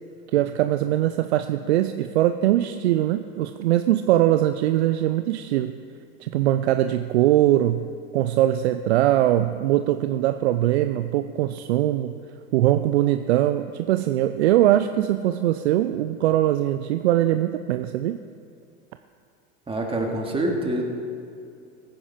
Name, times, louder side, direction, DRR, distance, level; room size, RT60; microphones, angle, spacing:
voice 1, 0.3-5.7 6.2-12.1 12.5-18.2, right 13 dB, 80° right, 10 dB, 0.6 m, -21 dB
voice 2, 19.7-20.8, right 1 dB, 15° right, 0 dB, 2.4 m, -25 dB
16.5 x 9.9 x 5.1 m, 2.5 s
hypercardioid pair, 95°, 32 cm